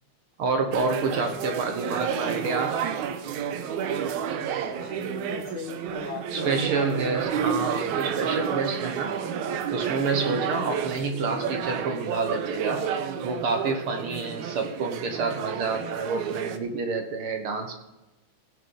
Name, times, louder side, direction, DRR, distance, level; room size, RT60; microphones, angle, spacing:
voice 1, 0.4-2.9 6.3-9.1 9.7-12.8 13.2-17.7, right 4 dB, 60° right, 5 dB, 1.7 m, -28 dB
sound 1, 0.7-16.6, right 7 dB, 80° right, 2.2 m, -30 dB
voice 2, 4.7-6.9, left 6 dB, 80° left, -5 dB, 3.2 m, -39 dB
17.0 x 6.6 x 5.3 m, 1.0 s
omnidirectional pair, 3.4 m